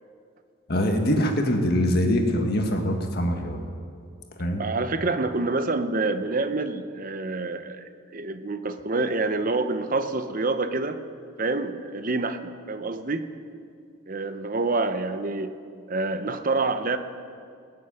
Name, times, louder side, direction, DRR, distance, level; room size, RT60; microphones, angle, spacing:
voice 1, 0.7-3.6 4.4-4.6, equal, 45° left, 3 dB, 1.7 m, -23 dB
voice 2, 4.6-7.8 8.1-11.0 11.4-13.3 14.1-15.5 15.9-17.0, right 3 dB, 40° right, 9 dB, 0.8 m, -27 dB
20.5 x 7.6 x 9.1 m, 2.3 s
head